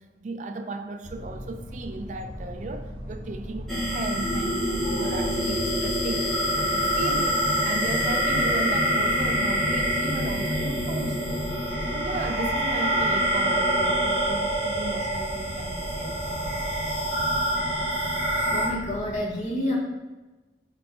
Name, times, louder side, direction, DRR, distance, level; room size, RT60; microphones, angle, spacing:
voice 1, 0.0-11.4 11.9-17.1, right 3 dB, 45° right, 0.4 m, -36 dB
sound 1, 1.0-19.1, equal, 30° right, 1.1 m, -39 dB
sound 2, 3.7-18.7, equal, ahead, 1.8 m, -26 dB
voice 2, 18.2-19.8, left 1 dB, 40° left, 1.4 m, -29 dB
4.6 x 4.6 x 4.8 m
head